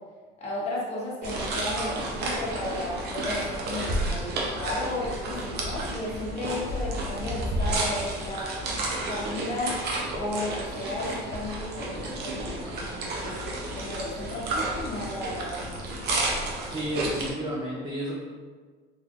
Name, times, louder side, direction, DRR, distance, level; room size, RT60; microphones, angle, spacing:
voice 1, 0.4-8.5 9.1-13.4 13.8-15.8, left 1 dB, 35° left, -6 dB, 1.2 m, -34 dB
sound 1, 1.2-17.3, right 2 dB, 55° right, 0.7 m, -31 dB
voice 2, 16.7-18.1, equal, 25° right, -4 dB, 0.6 m, -31 dB
3.3 x 3.3 x 2.5 m, 1.5 s
cardioid pair, 115°, 20 cm